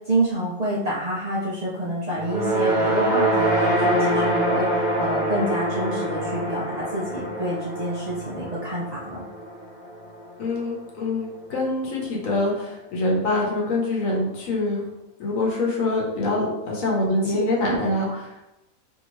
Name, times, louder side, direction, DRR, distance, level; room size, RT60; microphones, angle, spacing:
voice 1, 0.0-9.2 17.0-17.1 17.3-17.8 18.1-18.2, right 1 dB, 70° right, -6 dB, 0.3 m, -28 dB
sound 1, 2.2-10.5, right 1 dB, 50° left, 0.7 m, -25 dB
voice 2, 10.4-14.8 15.2-18.1, left 2 dB, 70° left, -2 dB, 1.1 m, -24 dB
2.9 x 2.7 x 3.0 m, 0.93 s
omnidirectional pair, 1.5 m